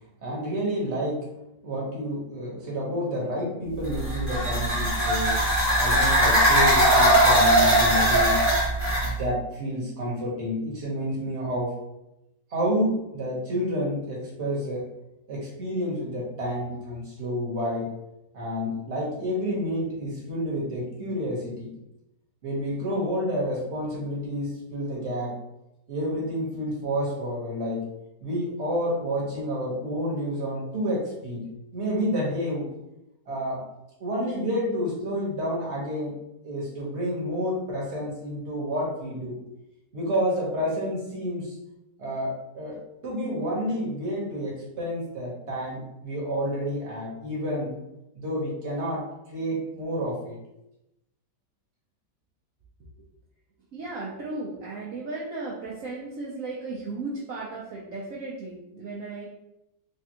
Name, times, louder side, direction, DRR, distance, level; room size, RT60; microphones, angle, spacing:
voice 1, 0.2-1.2 1.6-5.4 5.8-8.5 9.0-11.8 12.5-14.9 15.3-17.9 18.3-21.8 22.4-25.4 25.9-27.9 28.2-32.7 33.3-33.7 34.0-36.2 36.4-39.4 39.9-41.6 42.0-47.7 48.1-50.4, equal, 45° right, -4 dB, 1.3 m, -29 dB
sound 1, 3.8-9.1, right 1 dB, 10° right, 1.2 m, -20 dB
voice 2, 53.7-59.3, right 3 dB, 60° right, -4 dB, 1.0 m, -35 dB
3.4 x 3.3 x 2.9 m, 0.89 s
omnidirectional pair, 1.9 m